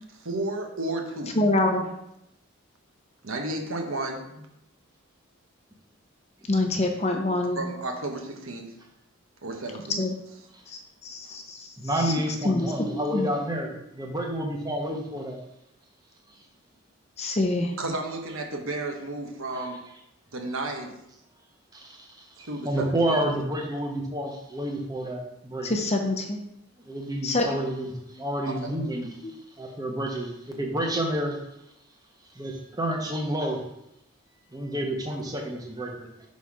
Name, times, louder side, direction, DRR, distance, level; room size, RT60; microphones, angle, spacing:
voice 1, 0.2-1.4 3.2-4.5 7.6-8.7 9.4-10.0 17.8-19.8 20.3-20.9 22.4-23.3 28.4-28.5, right 2 dB, 75° right, 2 dB, 1.1 m, -32 dB
voice 2, 1.4-1.9 6.5-7.6 10.0-10.1 10.7-12.1 12.4-13.3 17.2-17.7 25.6-26.4 27.2-27.6 28.1-28.2 29.2-29.3, left 2 dB, 30° left, 3 dB, 0.7 m, -26 dB
voice 3, 11.8-15.4 19.5-19.7 21.7-22.1 22.6-25.7 26.9-29.1 29.6-31.4 32.4-33.6 34.5-36.1, right 1 dB, 20° right, 1 dB, 0.9 m, -29 dB
5.6 x 4.2 x 4.8 m, 0.81 s
head